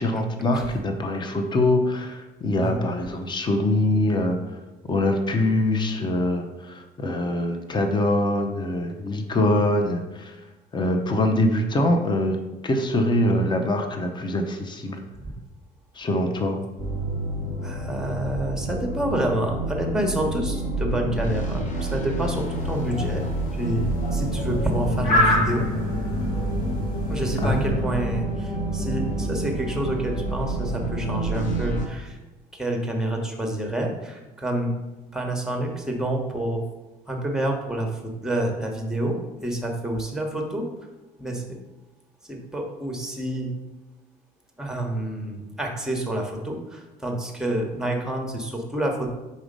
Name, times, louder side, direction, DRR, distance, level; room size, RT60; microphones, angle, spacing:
voice 1, 0.0-4.4 4.9-10.3 10.7-12.4 12.6-15.0 16.0-16.6 27.4-27.9, left 1 dB, 25° left, 5 dB, 0.7 m, -23 dB
voice 2, 2.5-2.9 17.6-23.2 23.5-23.9 24.1-25.7 27.1-32.2 32.5-34.7 35.1-36.6 37.1-40.7 41.2-41.6 42.3-43.5 44.6-49.1, right 1 dB, 5° right, 2 dB, 1.1 m, -28 dB
sound 1, 16.8-31.9, right 1 dB, 50° left, 1.1 m, -28 dB
sound 2, 22.4-27.7, left 1 dB, 70° left, 2.2 m, -27 dB
4.9 x 4.1 x 5.2 m, 1.1 s
cardioid pair, 110°, 17 cm